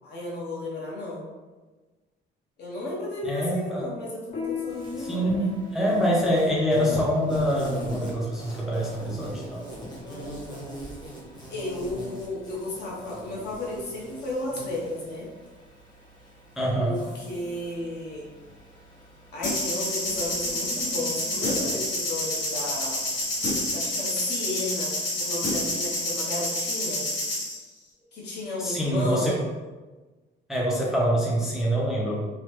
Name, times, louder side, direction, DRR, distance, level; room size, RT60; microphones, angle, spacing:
voice 1, 0.0-1.3 2.6-5.5 10.0-10.7 11.5-15.3 16.8-18.3 19.3-23.0 23.7-27.1 28.1-29.3, left 2 dB, 60° left, -5 dB, 1.0 m, -33 dB
voice 2, 3.2-3.9 5.0-9.7 16.6-17.0 28.6-29.4 30.5-32.3, equal, ahead, -4 dB, 0.4 m, -25 dB
Piano, 4.3-14.3, left 7 dB, 45° left, 0.6 m, -41 dB
Insect, 4.7-23.6, right 1 dB, 20° left, 0.9 m, -41 dB
sound 1, 19.4-27.6, left 1 dB, 90° left, 1.4 m, -28 dB
3.0 x 2.0 x 3.0 m, 1.2 s
cardioid pair, 150°, 19 cm